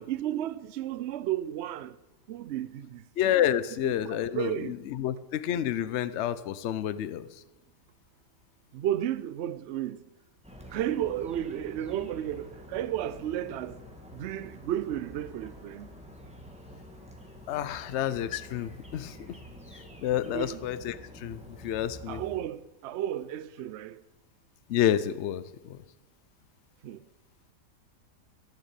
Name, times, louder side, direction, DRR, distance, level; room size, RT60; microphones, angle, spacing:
voice 1, 0.0-2.0 2.3-3.3 3.8-4.7 8.7-10.0 10.7-13.8 14.1-15.9 20.3-20.6 22.1-24.0 26.8-27.0, right 11 dB, 80° right, 0.6 m, -33 dB
voice 2, 3.2-7.3 17.5-19.2 20.0-22.2 24.7-25.8, left 11 dB, 60° left, 0.7 m, -29 dB
sound 1, 10.4-22.4, equal, 5° right, 1.7 m, -48 dB
14.5 x 6.8 x 8.3 m
omnidirectional pair, 1.8 m